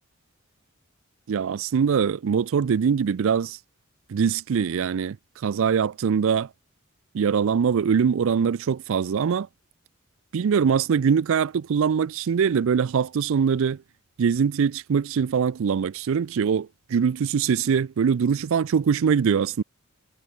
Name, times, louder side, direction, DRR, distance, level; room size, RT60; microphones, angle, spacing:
voice 1, 1.3-3.6 4.1-5.2 5.4-6.5 7.1-9.5 10.3-13.8 14.2-19.6, right 6 dB, 65° right, 0.4 m, -22 dB
head